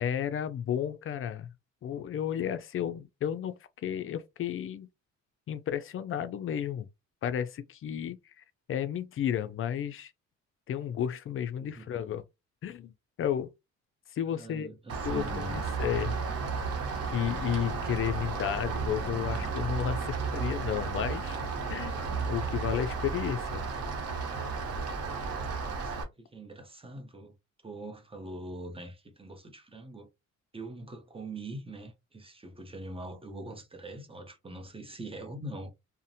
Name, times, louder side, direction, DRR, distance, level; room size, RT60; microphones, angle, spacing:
voice 1, 0.0-1.5 1.8-4.9 5.5-6.9 7.2-10.1 10.7-12.2 12.6-12.9 13.2-13.5 14.1-14.7 15.0-15.2 15.5-16.2 17.0-21.4 21.7-23.7, left 9 dB, 45° left, 0.4 m, -32 dB
voice 2, 11.6-12.0 14.3-15.7 16.3-16.5 25.8-27.4 27.6-30.1 30.5-35.7, right 2 dB, 20° right, 0.7 m, -43 dB
Rain, 14.9-26.0, right 4 dB, 55° right, 0.9 m, -33 dB
2.5 x 2.1 x 2.6 m
cardioid pair, 90°, 30 cm